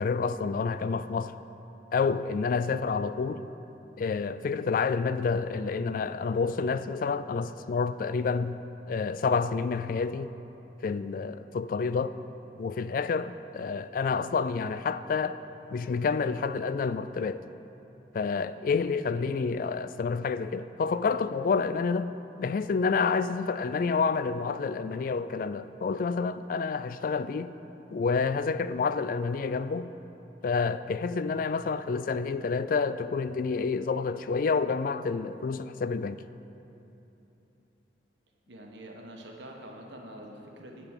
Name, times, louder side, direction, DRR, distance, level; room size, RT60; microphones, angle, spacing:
voice 1, 0.0-1.3 1.9-3.4 4.0-8.6 8.9-10.3 10.8-12.2 12.6-15.4 15.7-17.4 18.1-27.5 27.9-29.9 30.4-36.2, left 5 dB, 50° left, 0.3 m, -29 dB
voice 2, 38.5-40.9, right 1 dB, 80° right, 1.4 m, -45 dB
9.1 x 5.9 x 8.2 m
head